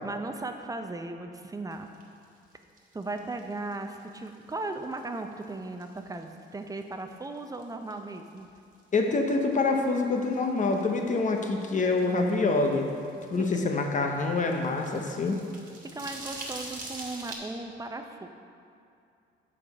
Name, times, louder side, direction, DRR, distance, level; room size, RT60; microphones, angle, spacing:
voice 1, 0.0-1.9 2.9-8.5 13.4-13.5 14.7-14.8 15.9-18.3, right 2 dB, 15° right, 6 dB, 0.5 m, -37 dB
sound 1, 1.7-5.5 5.8-6.4 6.7-6.8 7.1-9.1 9.3-17.4, right 2 dB, 40° right, 1.6 m, -45 dB
voice 2, 8.9-12.9 13.3-15.4, left 3 dB, 40° left, 3 dB, 0.9 m, -26 dB
6.8 x 4.9 x 5.4 m, 2.5 s
cardioid pair, 90°, 20 cm